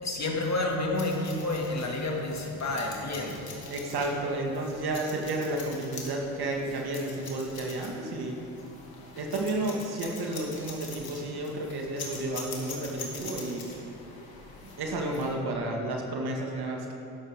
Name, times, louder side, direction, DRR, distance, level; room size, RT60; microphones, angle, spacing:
voice 1, 0.0-3.5, left 2 dB, 40° left, -1 dB, 2.4 m, -30 dB
sound 1, 1.0-15.3, left 4 dB, 55° left, 2.4 m, -44 dB
voice 2, 3.7-8.4 9.2-13.6 14.8-16.9, right 2 dB, 60° right, 0 dB, 2.1 m, -31 dB
13.0 x 11.0 x 3.7 m, 2.8 s
hypercardioid pair, 55°, 43 cm